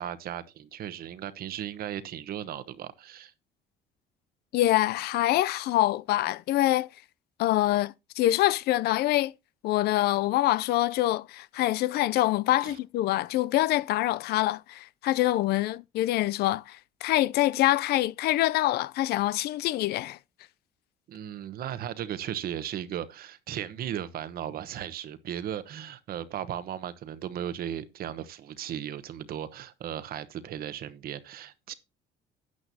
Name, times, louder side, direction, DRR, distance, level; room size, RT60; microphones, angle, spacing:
voice 1, 0.0-3.3 12.6-12.8 21.1-31.7, right 10 dB, 65° right, 1.0 m, -36 dB
voice 2, 4.5-6.9 7.4-9.3 9.6-20.2, left 15 dB, 75° left, 0.4 m, -25 dB
12.5 x 8.7 x 2.7 m
cardioid pair, 110°, 17 cm